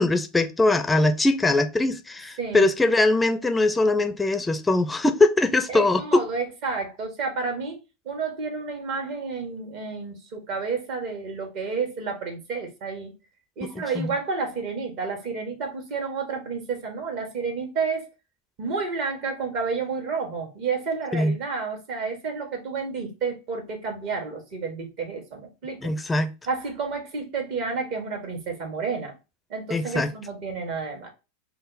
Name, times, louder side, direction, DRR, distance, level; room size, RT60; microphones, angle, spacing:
voice 1, 0.0-6.2 13.8-14.2 21.1-21.3 25.8-26.3 29.7-30.1, left 2 dB, 15° left, 0.6 m, -22 dB
voice 2, 5.7-7.8 8.0-13.1 13.6-18.1 18.6-25.9 26.5-29.1 29.5-31.1, right 4 dB, 50° right, 1.6 m, -30 dB
5.4 x 2.0 x 4.0 m
hypercardioid pair, 90°, 0 cm